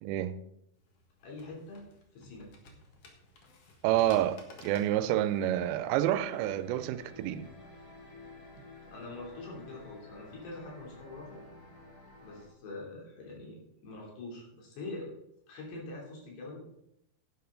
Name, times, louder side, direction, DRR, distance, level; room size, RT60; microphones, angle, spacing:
voice 1, 0.0-0.4 3.8-7.5, right 13 dB, 80° right, 2.3 m, -29 dB
sound 1, 0.8-6.1, left 3 dB, 50° left, 1.9 m, -55 dB
voice 2, 1.2-1.8 2.1-2.5 8.9-11.4 12.2-15.1 15.5-16.6, left 2 dB, 90° left, 5.2 m, -44 dB
sound 2, 5.3-12.5, left 2 dB, 30° left, 2.1 m, -52 dB
11.0 x 9.6 x 3.8 m
omnidirectional pair, 4.7 m